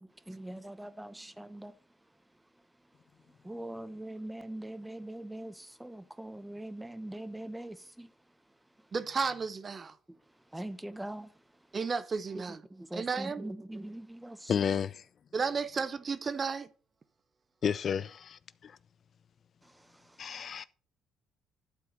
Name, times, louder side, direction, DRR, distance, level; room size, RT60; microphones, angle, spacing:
voice 1, 0.3-1.7 3.4-8.1 10.5-11.3 12.7-14.5 20.6-20.7, right 1 dB, 10° right, 0.9 m, -42 dB
voice 2, 8.9-10.0 11.7-12.6 12.9-13.5 15.3-16.7, right 5 dB, 35° right, 0.8 m, -33 dB
voice 3, 14.5-15.0 17.6-18.8 20.2-20.6, left 7 dB, 50° left, 0.4 m, -32 dB
11.5 x 4.6 x 5.5 m
supercardioid pair, 65°, 0 cm